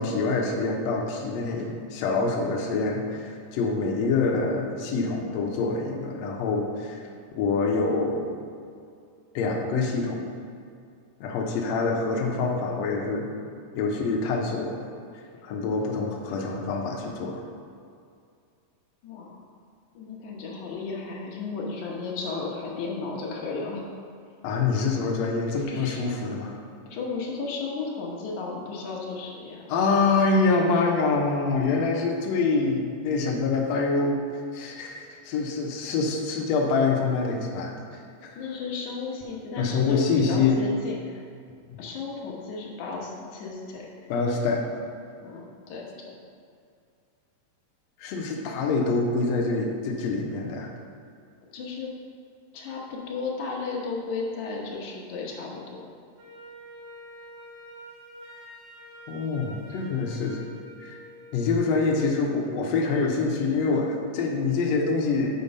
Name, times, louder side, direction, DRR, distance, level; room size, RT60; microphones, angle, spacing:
voice 1, 0.0-7.0 7.4-8.3 9.3-10.2 11.2-13.3 13.7-14.9 15.1-17.4 24.4-26.5 29.7-38.4 39.6-40.6 44.1-44.8 48.0-50.7 59.1-60.5 60.8-61.0 61.3-65.4, left 4 dB, 85° left, 0 dB, 1.5 m, -26 dB
voice 2, 19.0-19.4 20.0-23.9 25.7-26.0 26.9-29.7 38.4-41.2 41.8-44.1 45.2-46.1 51.5-51.9 52.5-55.8, left 4 dB, 65° left, -2 dB, 2.2 m, -34 dB
Wind instrument woodwind instrument, 56.2-62.3, equal, 90° right, 2.9 m, -47 dB
7.0 x 4.4 x 5.3 m, 2.3 s
omnidirectional pair, 4.1 m